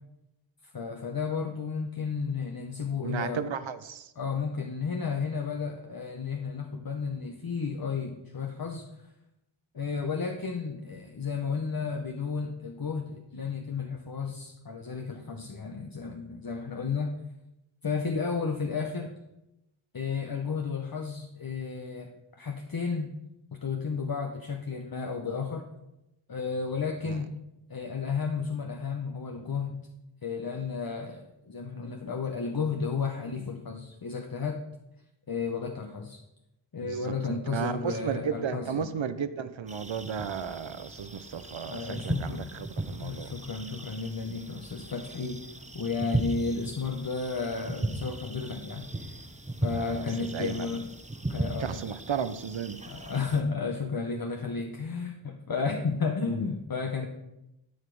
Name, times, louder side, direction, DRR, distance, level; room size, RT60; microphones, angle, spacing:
voice 1, 0.7-3.5 4.2-9.1 9.7-17.1 17.8-19.1 19.9-22.1 22.4-23.1 23.6-25.7 26.3-27.3 27.7-29.9 30.2-34.6 35.3-36.2 36.7-38.9 41.7-42.5 43.0-45.5 45.7-49.2 49.6-50.9 51.3-51.9 52.9-57.1, left 5 dB, 50° left, 3 dB, 0.9 m, -33 dB
voice 2, 3.0-4.1 27.0-27.2 36.8-43.3 49.7-50.7 51.6-52.8, right 7 dB, 75° right, 12 dB, 0.7 m, -34 dB
sound 1, 39.7-53.4, right 2 dB, 15° right, 1.0 m, -37 dB
13.0 x 5.0 x 4.7 m, 0.90 s
wide cardioid pair, 45°, 46 cm